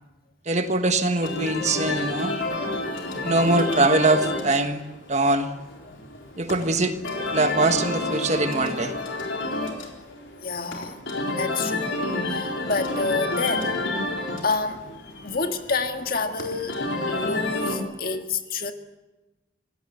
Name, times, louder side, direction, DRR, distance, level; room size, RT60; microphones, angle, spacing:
voice 1, 0.5-2.4 3.2-4.8 5.1-5.5 6.4-8.9, right 2 dB, 35° right, 1.4 m, -22 dB
sound 1, 1.1-17.8, left 2 dB, 80° left, 4.1 m, -29 dB
voice 2, 10.4-11.0 11.4-14.1 14.4-18.7, left 4 dB, 50° left, 1.8 m, -29 dB
26.0 x 17.5 x 8.0 m
head